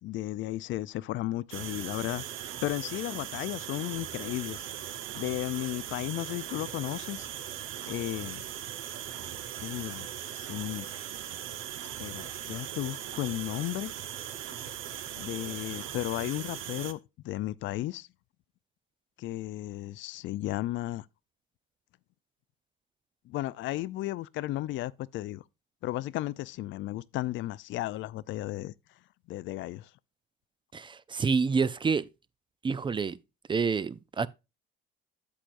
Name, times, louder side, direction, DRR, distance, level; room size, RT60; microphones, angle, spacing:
voice 1, 0.0-4.7 5.1-7.3 7.9-8.5 9.6-10.1 10.3-10.9 12.0-13.9 15.2-17.0 17.2-18.1 19.2-21.1 23.3-25.4 25.8-28.7 29.3-29.9, left 16 dB, 65° left, 0.4 m, -34 dB
sound 1, 1.5-16.9, right 11 dB, 70° right, 0.9 m, -39 dB
voice 2, 30.7-32.0 32.6-33.2 33.5-34.3, right 5 dB, 25° right, 0.4 m, -28 dB
8.4 x 7.7 x 2.5 m
cardioid pair, 95°, 21 cm